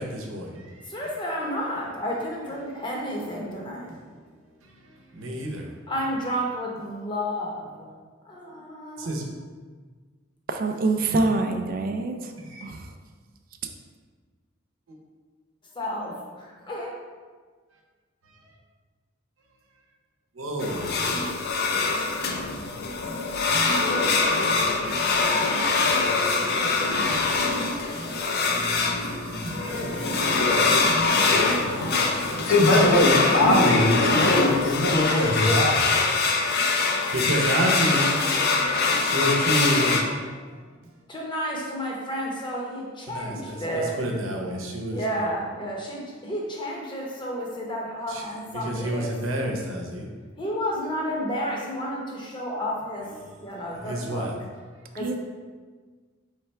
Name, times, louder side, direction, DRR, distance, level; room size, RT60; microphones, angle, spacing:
voice 1, 0.0-1.0 4.6-5.7 9.0-9.2 12.4-12.6 18.3-18.4 20.3-20.9 21.2-21.3 24.5-32.6 34.0-35.0 36.6-38.2 38.5-40.5 43.1-45.3 48.1-48.3 48.5-50.1 53.0-54.3, right 1 dB, 85° right, 0 dB, 0.8 m, -32 dB
voice 2, 0.9-3.9 5.9-7.9 8.3-9.2 15.8-16.9 41.1-43.9 44.9-49.1 50.4-53.1 53.4-54.3 55.0-55.2, equal, 25° left, -2 dB, 0.8 m, -31 dB
voice 3, 10.6-12.3 12.6-12.9 54.9-55.2, right 2 dB, 45° right, 5 dB, 0.4 m, -25 dB
sound 1, 20.6-40.0, left 3 dB, 50° left, 0.5 m, -23 dB
voice 4, 32.5-35.8, left 1 dB, 75° left, -1 dB, 0.8 m, -20 dB
3.3 x 3.3 x 4.4 m, 1.5 s
head